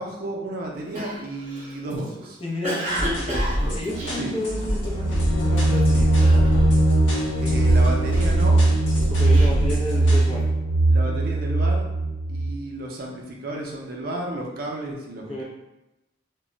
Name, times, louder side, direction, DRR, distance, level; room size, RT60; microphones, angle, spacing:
voice 1, 0.0-2.4 4.1-4.3 7.4-8.6 10.9-11.8 12.3-15.4, right 1 dB, 55° right, -1 dB, 0.5 m, -32 dB
Cough, 0.9-5.0 5.5-5.8 6.2-6.9 7.2-8.3 8.9-10.4, equal, 35° right, 0.9 m, -32 dB
voice 2, 2.4-3.4 3.7-6.1 9.1-10.5 15.3-15.4, left 1 dB, 30° left, -3 dB, 0.6 m, -31 dB
sound 1, 2.9-10.3, equal, 75° left, 0.9 m, -28 dB
sound 2, 4.9-12.6, right 2 dB, 90° left, 0.4 m, -20 dB
2.2 x 2.0 x 3.7 m, 0.94 s
head